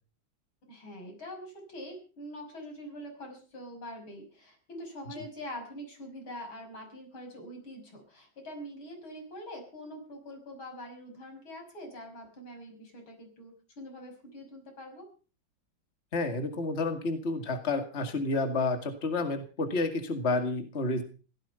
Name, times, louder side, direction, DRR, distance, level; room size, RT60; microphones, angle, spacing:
voice 1, 0.6-15.1, equal, 90° left, 4 dB, 6.5 m, -44 dB
voice 2, 16.1-21.0, left 3 dB, 35° left, 7 dB, 2.3 m, -30 dB
17.0 x 14.5 x 5.6 m, 0.38 s
omnidirectional pair, 2.2 m